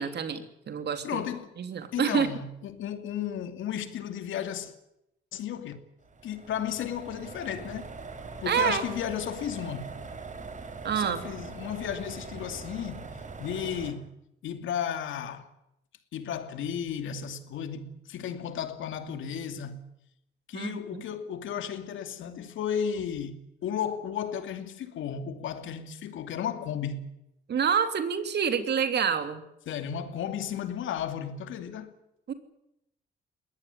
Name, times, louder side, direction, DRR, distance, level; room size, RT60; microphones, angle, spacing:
voice 1, 0.0-1.2 1.6-2.3 8.5-8.8 10.8-11.2 20.5-21.0 27.5-29.4 32.3-32.4, right 7 dB, 55° right, 3.1 m, -27 dB
voice 2, 1.0-1.5 1.9-4.7 5.3-5.8 6.2-7.9 8.4-9.9 10.9-14.1 14.4-15.5 16.1-19.9 20.5-27.1 29.7-32.0, left 8 dB, 80° left, 2.7 m, -34 dB
sound 1, 6.0-13.9, right 4 dB, 40° right, 4.6 m, -42 dB
22.0 x 18.5 x 9.5 m
cardioid pair, 90°, 20 cm